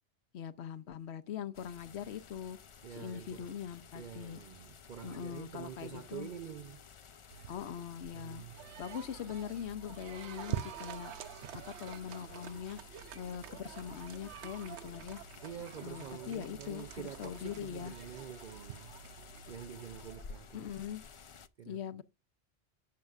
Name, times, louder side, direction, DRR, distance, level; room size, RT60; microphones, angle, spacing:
voice 1, 0.3-2.6 2.9-4.4 5.0-6.3 7.5-8.4 8.8-11.1 11.5-12.8 13.1-15.2 15.8-17.9 20.5-21.0 21.7-22.0, left 9 dB, 75° left, 0.9 m, -42 dB
sound 1, 1.5-21.5, left 6 dB, 45° left, 0.4 m, -54 dB
voice 2, 2.8-3.6 3.9-6.8 8.1-8.6 15.4-18.9 19.5-20.7 21.6-21.8, right 9 dB, 55° right, 0.6 m, -47 dB
sound 2, 7.3-20.2, right 11 dB, 80° right, 0.9 m, -47 dB
11.5 x 7.6 x 2.4 m
omnidirectional pair, 1.1 m